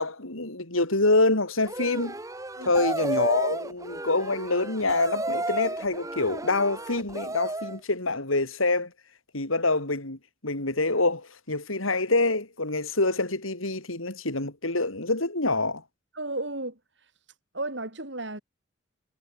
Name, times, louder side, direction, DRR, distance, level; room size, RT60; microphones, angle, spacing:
voice 1, 0.0-2.1 2.6-8.9 9.3-15.8, left 2 dB, 85° left, 4.9 m, -26 dB
sound 1, 1.6-7.8, right 2 dB, 15° right, 1.0 m, -32 dB
voice 2, 16.2-16.7 17.5-18.4, right 2 dB, 60° right, 4.2 m, -33 dB
head